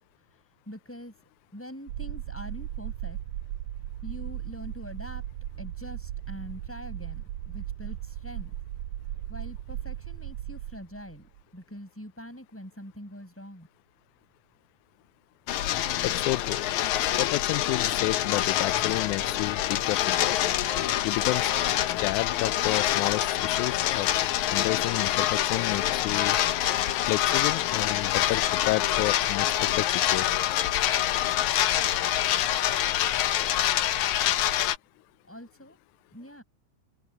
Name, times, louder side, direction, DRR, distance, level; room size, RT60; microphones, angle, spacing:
voice 1, 0.7-1.1 1.5-3.2 4.0-5.2 5.6-8.5 9.3-13.7 35.3-35.8 36.1-36.4, equal, 5° left, 6.1 m, -43 dB
sound 1, 1.9-11.4, right 12 dB, 80° right, 1.6 m, -37 dB
sound 2, 15.5-34.8, left 12 dB, 70° left, 2.1 m, -26 dB
voice 2, 16.0-16.6 17.2-20.5 21.0-21.5 22.0-24.1 24.5-26.4 26.8-30.6, left 20 dB, 85° left, 1.8 m, -31 dB
open air
omnidirectional pair, 4.0 m